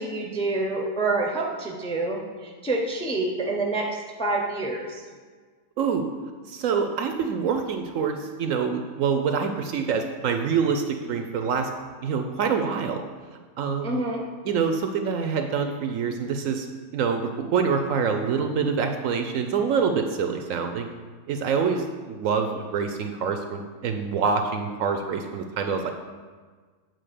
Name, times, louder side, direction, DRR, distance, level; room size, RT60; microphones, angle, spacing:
voice 1, 0.0-5.1 13.8-14.3 22.5-22.6, right 2 dB, 5° left, 0 dB, 0.5 m, -27 dB
voice 2, 5.8-6.1 6.5-11.7 12.0-13.0 13.6-14.1 14.4-16.7 16.9-20.9 21.3-25.9, right 6 dB, 70° right, 6 dB, 0.9 m, -26 dB
7.7 x 3.9 x 6.7 m, 1.5 s
omnidirectional pair, 1.6 m